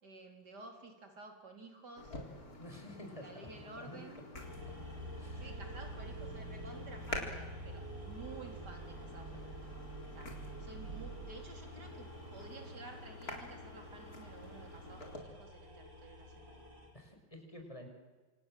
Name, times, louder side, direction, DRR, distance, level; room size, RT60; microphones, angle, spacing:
voice 1, 0.0-2.2 3.1-4.2 5.4-9.8 10.1-16.6, right 3 dB, 65° right, 4 dB, 4.6 m, -52 dB
sound 1, 2.0-15.2, left 2 dB, 55° left, 4.4 m, -49 dB
voice 2, 2.6-4.0 5.2-5.6 9.3-9.4 16.9-17.9, left 1 dB, 15° left, 3 dB, 6.0 m, -50 dB
sound 2, 4.4-16.9, right 1 dB, 85° right, 7.1 m, -47 dB
28.5 x 27.0 x 7.7 m, 1.3 s
omnidirectional pair, 2.0 m